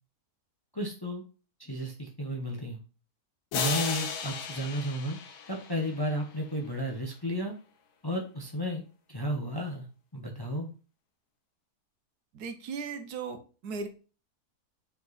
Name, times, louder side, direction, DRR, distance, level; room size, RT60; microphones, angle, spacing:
voice 1, 0.7-1.2 1.6-2.8 3.5-5.2 5.5-7.5 8.0-8.8 9.1-9.9 10.1-10.7, equal, 20° left, 2 dB, 0.8 m, -33 dB
sound 1, 3.5-6.4, left 6 dB, 90° left, 1.5 m, -34 dB
voice 2, 12.3-13.9, right 5 dB, 80° right, 8 dB, 1.4 m, -37 dB
5.7 x 4.6 x 4.0 m, 0.36 s
omnidirectional pair, 1.6 m